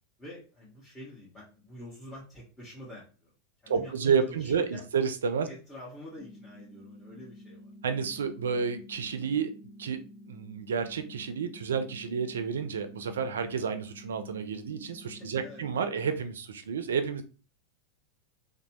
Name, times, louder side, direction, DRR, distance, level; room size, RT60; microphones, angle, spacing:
voice 1, 0.2-3.3 3.6-4.9 5.5-7.7 15.1-15.6, left 1 dB, 15° left, -8 dB, 1.4 m, -47 dB
voice 2, 3.7-5.5 7.8-9.5 9.8-10.0 10.3-17.2, right 6 dB, 85° right, 9 dB, 0.4 m, -30 dB
sound 1, 6.2-16.2, left 1 dB, 50° left, 0.8 m, -50 dB
3.0 x 2.1 x 2.8 m, 0.34 s
hypercardioid pair, 100°, 0 cm